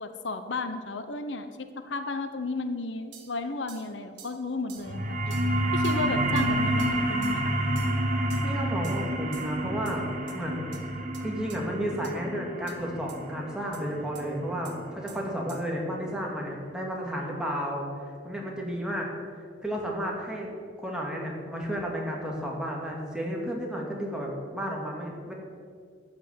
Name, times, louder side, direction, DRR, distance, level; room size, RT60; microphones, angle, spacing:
voice 1, 0.0-5.4 5.7-7.5, left 3 dB, 90° left, 9 dB, 1.0 m, -33 dB
sound 1, 3.1-3.3 3.7-3.9 4.2-4.4 4.7-4.9 5.3-5.5 5.8-6.0 6.4-6.5 6.8-6.9 7.2-7.4 7.8-8.0 8.3-8.5 8.8-9.0 9.3-9.5 9.8-10.0 10.3-10.4 10.7-10.8 11.1-11.2 11.5-11.6 12.0-12.1 12.7-12.8 13.1-13.2 13.7-13.8 14.1-14.2 14.6-14.8 15.1-15.2 15.5-15.6, right 8 dB, 90° right, 1.5 m, -48 dB
sound 2, 4.8-15.9, right 1 dB, 45° right, 2.0 m, -29 dB
voice 2, 8.4-10.0 10.3-19.1 19.6-20.5 20.8-25.3, equal, 5° right, -2 dB, 2.4 m, -32 dB
13.0 x 6.0 x 9.5 m, 2.1 s
head